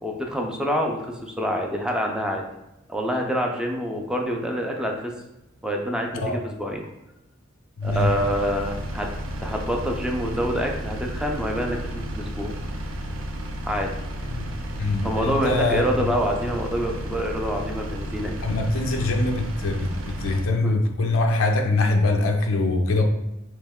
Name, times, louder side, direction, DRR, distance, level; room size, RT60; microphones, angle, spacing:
voice 1, 0.0-2.4 2.9-5.1 5.6-6.8 7.8-9.1 9.4-12.5 13.7-13.9 15.0-18.4 20.6-20.7, equal, 5° right, 1 dB, 0.4 m, -26 dB
voice 2, 7.8-8.1 14.3-14.5 14.8-15.8 18.4-23.0, left 2 dB, 85° left, 4 dB, 0.5 m, -23 dB
Engine, 7.8-20.5, equal, 85° right, 0.5 m, -32 dB
3.2 x 2.9 x 3.5 m, 0.90 s
head